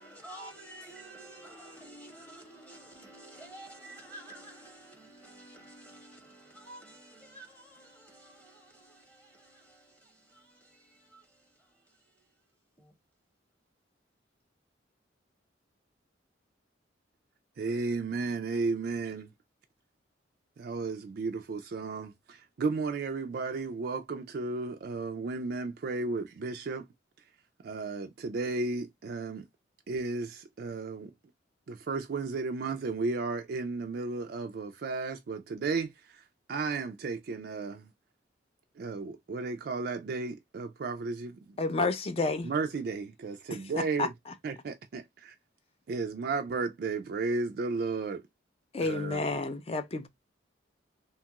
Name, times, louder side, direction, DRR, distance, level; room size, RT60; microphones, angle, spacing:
voice 1, 0.0-11.7 12.8-12.9, right 1 dB, 10° left, 0.7 m, -50 dB
voice 2, 17.6-19.3 20.6-26.9 27.6-29.5 29.9-31.1 31.7-36.2 36.5-37.9 38.8-41.6 42.4-44.1 44.4-45.3 45.9-48.2 48.8-49.2, right 4 dB, 55° right, 0.3 m, -34 dB
voice 3, 41.6-42.5 43.5-44.3 48.7-50.1, left 3 dB, 30° left, 0.4 m, -31 dB
2.8 x 2.3 x 2.8 m
head